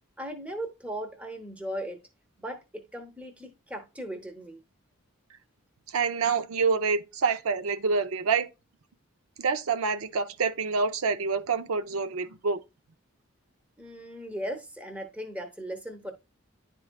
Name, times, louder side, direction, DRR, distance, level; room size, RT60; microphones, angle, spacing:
voice 1, 0.2-2.0 2.4-4.6 13.8-16.1, right 1 dB, 5° right, 0.8 m, -37 dB
voice 2, 5.9-8.5 9.4-12.6, right 5 dB, 85° right, 0.5 m, -27 dB
10.5 x 4.5 x 2.2 m
head